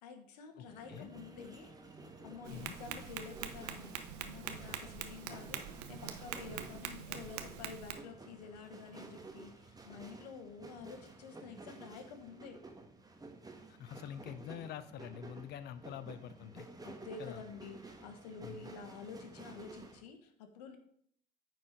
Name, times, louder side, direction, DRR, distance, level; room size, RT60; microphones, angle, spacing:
voice 1, 0.0-12.6 16.8-20.8, left 5 dB, 85° left, 6 dB, 1.2 m, -50 dB
voice 2, 0.6-1.1 2.5-2.7 13.7-16.7 17.2-17.4 18.4-18.7, left 9 dB, 55° left, 12 dB, 0.7 m, -46 dB
sound 1, 0.6-20.0, right 3 dB, 20° right, 1.4 m, -53 dB
Tap, 2.4-7.9, right 9 dB, 85° right, 0.8 m, -44 dB
9.2 x 4.6 x 5.1 m, 0.64 s
hypercardioid pair, 70°, 20 cm